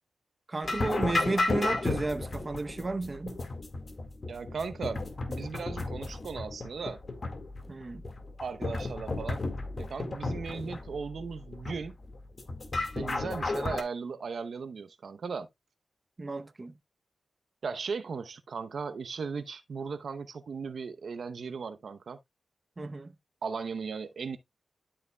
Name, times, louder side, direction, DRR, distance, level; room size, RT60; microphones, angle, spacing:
voice 1, 0.5-3.4 7.7-8.0 16.2-16.7 22.8-23.1, right 3 dB, 40° right, 0.8 m, -33 dB
sound 1, 0.6-13.8, left 2 dB, 45° left, 1.8 m, -34 dB
voice 2, 4.3-5.0 5.3-7.0 8.4-9.4 9.8-11.9 13.0-15.5 17.6-22.2 23.4-24.4, right 5 dB, 70° right, 0.8 m, -37 dB
12.5 x 5.0 x 2.2 m
cardioid pair, 50°, 0 cm